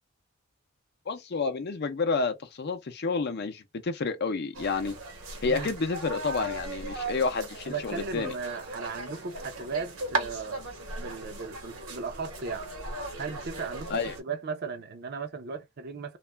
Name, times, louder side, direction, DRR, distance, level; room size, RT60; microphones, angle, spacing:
voice 1, 1.1-5.0 5.4-8.3 13.9-14.2, left 4 dB, 50° left, 0.5 m, -30 dB
sound 1, 4.5-14.2, right 2 dB, 80° right, 1.0 m, -37 dB
voice 2, 5.4-5.7 7.7-10.6 11.0-12.7 13.2-16.2, right 5 dB, 50° right, 0.5 m, -36 dB
2.4 x 2.1 x 3.1 m
head